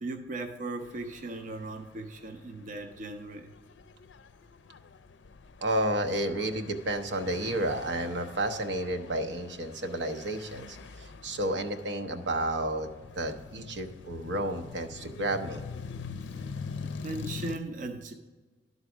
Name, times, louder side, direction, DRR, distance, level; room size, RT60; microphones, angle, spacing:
voice 1, 0.0-3.5 16.3-16.4 16.8-18.1, right 2 dB, 45° right, 6 dB, 0.5 m, -38 dB
sound 1, 0.8-17.6, left 5 dB, 85° left, 0.4 m, -45 dB
voice 2, 5.6-12.9 13.2-15.6, right 1 dB, 80° right, 6 dB, 0.8 m, -31 dB
11.5 x 4.0 x 6.0 m, 1.3 s
head